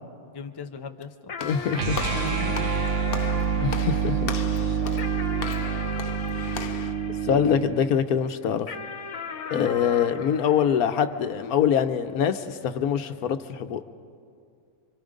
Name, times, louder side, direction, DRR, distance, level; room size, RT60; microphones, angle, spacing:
voice 1, 0.2-1.3 2.0-2.7 3.1-3.3 3.5-4.1 4.6-5.1, left 4 dB, 25° left, 7 dB, 0.5 m, -39 dB
sound 1, 1.3-8.0 8.7-11.5, left 5 dB, 65° left, 1.5 m, -38 dB
voice 2, 1.4-2.0 3.6-4.3 7.2-8.7 9.5-13.8, left 8 dB, 85° left, 9 dB, 1.3 m, -24 dB
Walk footsteps / Slam, 1.4-6.9, left 6 dB, 45° left, 0.9 m, -38 dB
sound 2, 1.7-7.8, right 6 dB, 60° right, 1.2 m, -27 dB
26.0 x 25.5 x 5.2 m, 2.3 s
omnidirectional pair, 1.5 m